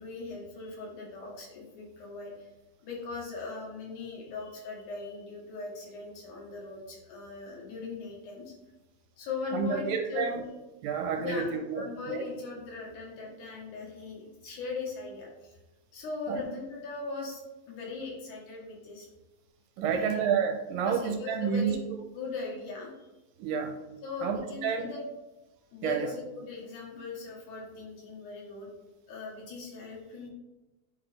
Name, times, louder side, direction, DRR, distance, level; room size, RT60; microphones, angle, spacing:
voice 1, 0.0-2.5 2.8-8.5 9.2-10.5 11.2-15.6 15.9-17.4 17.7-19.1 19.8-20.2 20.8-21.8 22.1-23.1 24.0-25.0 25.7-28.7 29.1-30.3, left 4 dB, 65° left, -2 dB, 2.5 m, -39 dB
voice 2, 9.5-10.4 10.8-12.2 16.3-16.5 19.8-21.8 23.4-23.7 24.2-24.9 25.8-26.1, right 6 dB, 80° right, 3 dB, 2.2 m, -30 dB
8.4 x 4.0 x 3.3 m, 1.1 s
omnidirectional pair, 4.1 m